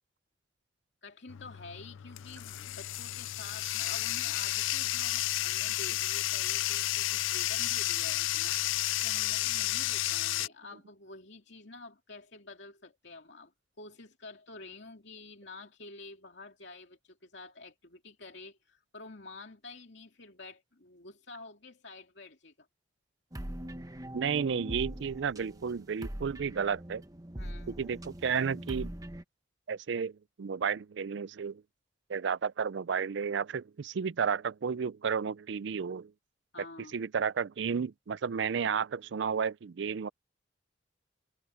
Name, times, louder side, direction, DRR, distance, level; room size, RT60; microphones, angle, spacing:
voice 1, 1.0-8.6 9.0-13.5 13.8-22.7 27.4-27.8 36.5-37.0, left 3 dB, 65° left, 2.6 m, -49 dB
Bathtub (filling or washing), 1.3-10.5, left 15 dB, 85° left, 0.4 m, -32 dB
sound 1, 23.3-29.2, right 1 dB, 20° right, 1.1 m, -42 dB
voice 2, 24.1-27.0 27.8-28.9 29.7-30.1 30.4-31.6 32.1-36.1 36.9-40.1, right 6 dB, 65° right, 0.4 m, -32 dB
head